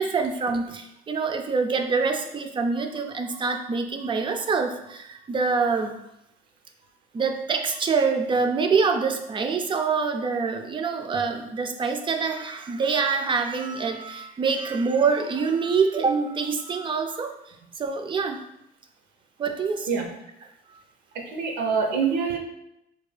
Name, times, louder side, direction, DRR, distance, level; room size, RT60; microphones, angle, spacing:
voice 1, 0.0-5.9 7.1-17.3 17.8-18.4 19.4-20.1 20.7-20.8, right 5 dB, 30° right, 5 dB, 0.4 m, -25 dB
voice 2, 21.1-22.4, right 5 dB, 85° right, 2 dB, 0.7 m, -25 dB
3.3 x 2.2 x 3.2 m, 0.83 s
cardioid pair, 110°, 17 cm